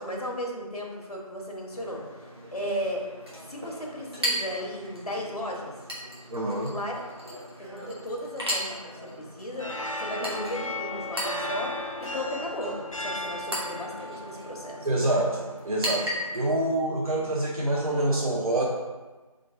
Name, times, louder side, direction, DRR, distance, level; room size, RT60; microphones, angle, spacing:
voice 1, 0.0-2.0 2.5-3.0 3.5-5.7 6.7-7.0 7.6-14.9, equal, 85° left, -1 dB, 1.3 m, -35 dB
Chink clink, 1.7-16.7, equal, 45° right, 1.2 m, -37 dB
voice 2, 6.3-6.7 14.8-18.6, right 1 dB, 70° right, -4 dB, 0.9 m, -26 dB
sound 1, 9.6-16.9, left 1 dB, 60° left, 0.5 m, -36 dB
3.8 x 3.4 x 3.7 m, 1.2 s
figure-of-eight pair, 180°, 19 cm